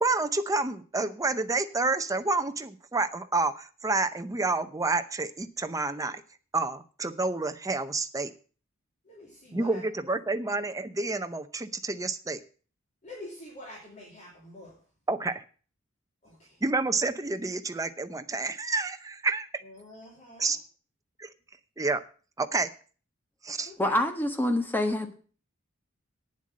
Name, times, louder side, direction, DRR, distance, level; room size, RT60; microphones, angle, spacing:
voice 1, 0.0-6.2 6.5-8.3 9.5-12.4 15.1-15.4 16.6-19.5 20.4-20.6 21.2-21.3 21.8-22.0 22.4-22.7 23.4-23.7, right 3 dB, 15° right, 9 dB, 0.7 m, -29 dB
voice 2, 9.0-9.8 10.1-10.2 13.0-14.8 16.2-16.6 19.6-20.6 23.7-24.0, left 1 dB, 35° left, -3 dB, 2.8 m, -46 dB
voice 3, 23.8-25.1, left 1 dB, 10° left, 5 dB, 1.4 m, -26 dB
9.1 x 7.5 x 7.5 m, 0.40 s
head